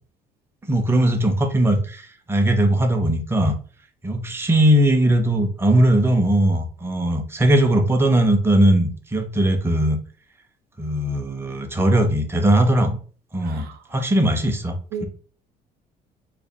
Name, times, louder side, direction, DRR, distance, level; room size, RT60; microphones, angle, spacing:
voice 1, 0.7-3.6 4.0-10.0 10.8-13.0 13.3-14.8, right 1 dB, 15° right, 0.7 m, -19 dB
voice 2, 13.4-13.7 14.2-14.4 14.9-15.1, right 6 dB, 65° right, 0.6 m, -33 dB
3.3 x 2.3 x 3.9 m
cardioid pair, 110°, 17 cm